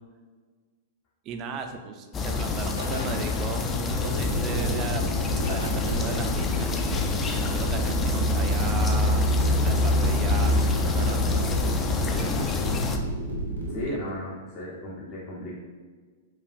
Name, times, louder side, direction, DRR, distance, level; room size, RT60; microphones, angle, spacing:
voice 1, 1.2-5.0 5.5-6.8 7.3-9.2 9.6-11.5 12.0-12.6, right 5 dB, 35° right, 6 dB, 0.4 m, -36 dB
sound 1, 2.1-13.0, left 2 dB, 25° left, 0.4 m, -26 dB
sound 2, 2.8-4.0 5.4-6.5, left 3 dB, 80° left, 0.5 m, -40 dB
sound 3, 3.9-13.9, right 1 dB, 80° right, 0.8 m, -31 dB
voice 2, 13.7-15.5, equal, 45° left, -5 dB, 0.8 m, -35 dB
4.8 x 2.4 x 2.5 m, 1.4 s
figure-of-eight pair, 105°, 0 cm